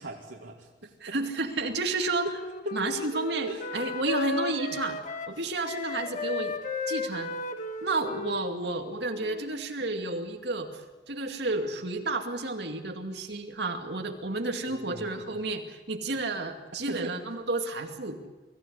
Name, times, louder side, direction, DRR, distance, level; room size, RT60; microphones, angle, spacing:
voice 1, 0.0-1.2 2.7-2.8 3.5-3.6 14.7-15.1 16.9-17.1, right 1 dB, 85° right, -2 dB, 2.3 m, -39 dB
voice 2, 1.0-2.3 2.7-5.0 5.3-6.5 6.9-7.3 7.8-18.2, right 2 dB, 65° right, 5 dB, 2.3 m, -31 dB
Wind instrument woodwind instrument, 1.6-9.7, left 3 dB, 45° left, 1.5 m, -35 dB
24.0 x 15.5 x 10.0 m, 1.2 s
head